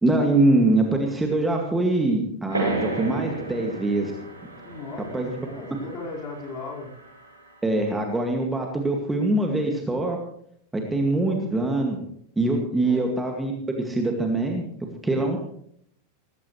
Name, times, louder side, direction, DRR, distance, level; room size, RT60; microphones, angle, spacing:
voice 1, 0.0-4.1 5.1-5.4 7.6-10.2 10.7-12.0 12.4-13.5 13.8-14.6 15.0-15.4, right 2 dB, 10° right, 2 dB, 2.2 m, -23 dB
sound 1, 2.5-7.7, right 2 dB, 80° right, 6.3 m, -34 dB
voice 2, 4.6-6.9 12.8-13.1, left 3 dB, 35° left, -3 dB, 5.0 m, -37 dB
18.5 x 16.0 x 3.3 m, 0.67 s
figure-of-eight pair, 90°, 0 cm